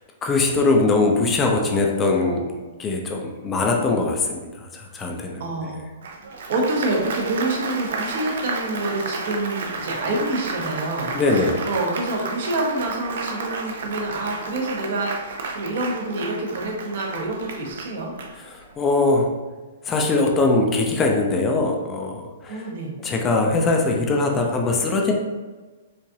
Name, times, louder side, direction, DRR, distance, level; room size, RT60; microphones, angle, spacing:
voice 1, 0.2-2.5 2.8-5.4 11.1-11.6 18.5-19.3 19.8-22.7 23.0-25.1, left 3 dB, 15° left, 1 dB, 0.5 m, -21 dB
voice 2, 5.4-5.8 6.5-18.1 22.5-22.9, right 2 dB, 55° right, 0 dB, 1.0 m, -27 dB
Applause, 6.0-18.8, right 3 dB, 70° right, 0.5 m, -32 dB
4.7 x 2.5 x 2.8 m, 1.3 s
hypercardioid pair, 160°, 0 cm